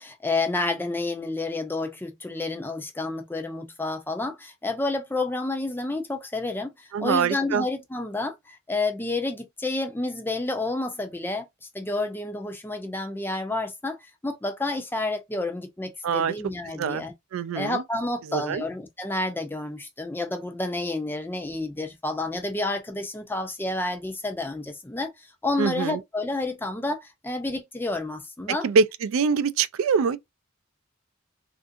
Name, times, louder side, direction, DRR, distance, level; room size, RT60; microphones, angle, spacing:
voice 1, 0.0-11.5 11.7-17.1 17.5-28.7, left 2 dB, 10° left, 0.5 m, -30 dB
voice 2, 6.9-7.6 16.0-16.3 16.8-17.0 17.3-17.8 18.3-18.6 25.6-26.0 28.5-30.2, right 5 dB, 80° right, 0.3 m, -24 dB
3.5 x 2.5 x 2.5 m
head